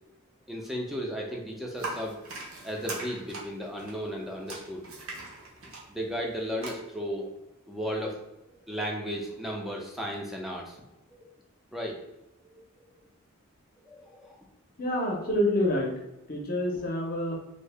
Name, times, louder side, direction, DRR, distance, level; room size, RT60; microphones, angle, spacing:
voice 1, 0.5-2.2 2.6-4.9 5.9-7.4 7.7-8.2 8.6-11.3 11.7-12.0 12.4-12.5 13.8-14.4, equal, ahead, -1 dB, 0.5 m, -35 dB
sound 1, 1.8-6.7, right 2 dB, 70° right, 0.9 m, -41 dB
voice 2, 14.8-15.9 16.3-17.3, left 1 dB, 45° left, 0 dB, 0.7 m, -27 dB
2.8 x 2.7 x 3.3 m, 0.94 s
head